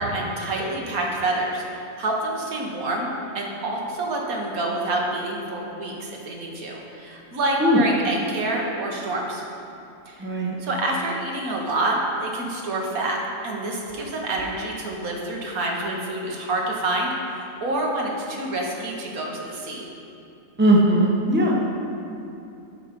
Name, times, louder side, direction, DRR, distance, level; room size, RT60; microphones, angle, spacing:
voice 1, 0.0-9.4 10.1-10.3 10.6-19.9, right 2 dB, 80° right, -1 dB, 1.6 m, -27 dB
voice 2, 10.2-10.6 20.6-21.5, right 1 dB, 10° right, -2 dB, 0.8 m, -18 dB
9.9 x 5.1 x 5.1 m, 2.8 s
omnidirectional pair, 1.5 m